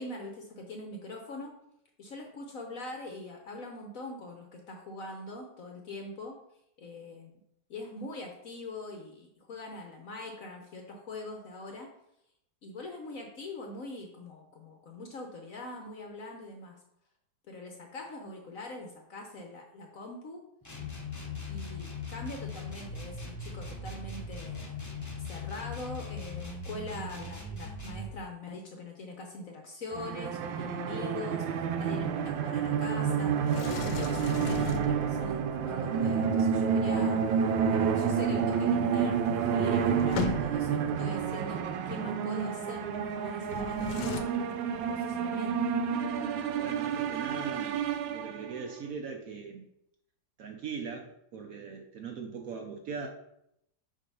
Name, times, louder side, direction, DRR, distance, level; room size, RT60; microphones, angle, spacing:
voice 1, 0.0-1.5 2.0-6.4 6.8-7.3 7.7-11.9 12.6-16.8 17.5-20.4 21.5-24.8 25.2-33.6 33.9-45.7, left 2 dB, 60° left, 2 dB, 1.0 m, -42 dB
sound 1, 20.6-28.1, left 3 dB, 25° left, 0.3 m, -40 dB
sound 2, 29.9-48.7, right 7 dB, 85° right, 1.3 m, -29 dB
Sliding door, 33.5-35.4 39.0-39.1 39.2-40.8 43.4-44.2, left 5 dB, 80° left, 1.3 m, -36 dB
voice 2, 46.6-47.8 48.1-49.7 50.4-53.1, right 5 dB, 65° right, 3 dB, 0.9 m, -40 dB
7.5 x 2.8 x 5.4 m, 0.78 s
omnidirectional pair, 2.0 m